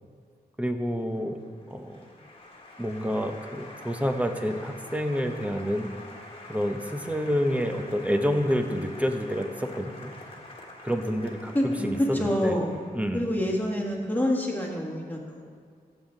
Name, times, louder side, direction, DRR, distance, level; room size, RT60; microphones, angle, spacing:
voice 1, 0.6-1.4 1.7-2.0 2.8-5.9 6.5-10.1 10.8-12.6 12.9-13.3, equal, 10° right, 5 dB, 0.8 m, -28 dB
Applause, 0.8-13.3, left 2 dB, 35° left, 1.6 m, -46 dB
voice 2, 11.5-12.8 13.1-15.6, left 1 dB, 10° left, -2 dB, 1.9 m, -27 dB
14.5 x 7.4 x 3.9 m, 2.1 s
wide cardioid pair, 105°, 17 cm